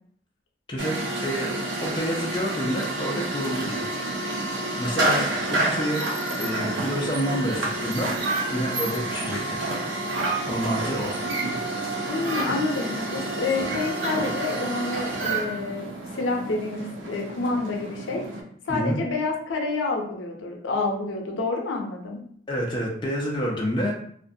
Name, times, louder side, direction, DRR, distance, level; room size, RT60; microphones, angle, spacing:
voice 1, 0.7-1.5 1.8-3.9 4.8-6.0 6.3-8.1 8.5-9.4 10.5-11.2 18.7-19.0 22.5-23.9, equal, 25° left, -2 dB, 0.3 m, -28 dB
sound 1, 0.8-18.4, right 2 dB, 80° right, 0.6 m, -29 dB
voice 2, 12.1-18.2 18.7-22.2, left 3 dB, 85° left, 1 dB, 0.5 m, -28 dB
2.4 x 2.2 x 2.6 m, 0.64 s
head